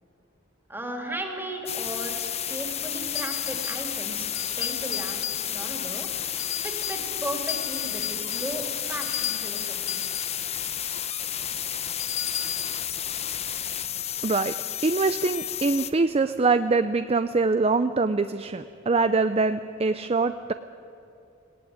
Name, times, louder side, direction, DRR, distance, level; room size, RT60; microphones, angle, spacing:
voice 1, 0.7-2.2 2.5-4.3 4.6-6.1 6.6-10.0, right 1 dB, 10° right, 2 dB, 2.8 m, -36 dB
sound 1, 1.7-15.9, left 9 dB, 30° left, 0.8 m, -31 dB
sound 2, 3.1-3.9 4.3-5.8 6.4-7.1 7.5-10.4 12.0-12.8, left 10 dB, 70° left, 2.4 m, -35 dB
voice 2, 14.2-14.6 14.8-20.5, right 3 dB, 30° right, 11 dB, 0.5 m, -24 dB
19.5 x 19.0 x 9.6 m, 2.6 s
head